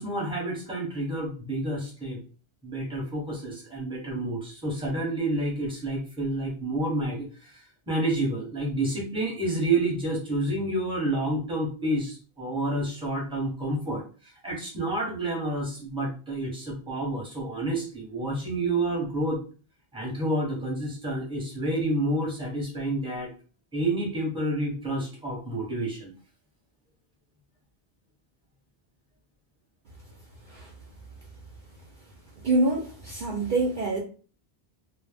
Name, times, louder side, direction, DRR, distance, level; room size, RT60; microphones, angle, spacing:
voice 1, 0.0-2.2 2.6-19.4 19.9-23.3 23.7-26.1, right 1 dB, 5° right, 0.8 m, -29 dB
voice 2, 32.4-34.0, right 2 dB, 55° right, 0.6 m, -26 dB
2.0 x 2.0 x 3.2 m
omnidirectional pair, 1.0 m